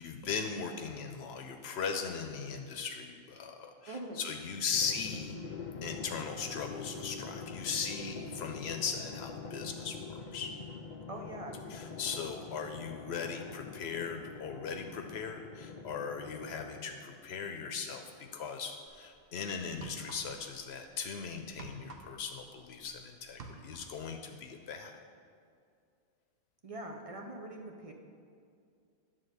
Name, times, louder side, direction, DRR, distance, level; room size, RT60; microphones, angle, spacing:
voice 1, 0.0-5.4 5.8-10.5 11.7-24.9, left 6 dB, 80° left, 5 dB, 0.9 m, -38 dB
voice 2, 3.9-4.2 11.1-11.6 26.6-27.9, right 1 dB, 40° right, 2 dB, 0.7 m, -43 dB
Drum, 4.7-17.1, left 5 dB, 50° left, 0.7 m, -44 dB
sound 1, 18.9-19.1 19.7-20.6 20.8-23.0 23.2-24.0, right 3 dB, 65° right, 1.0 m, -49 dB
11.0 x 3.7 x 6.6 m, 2.3 s
omnidirectional pair, 1.1 m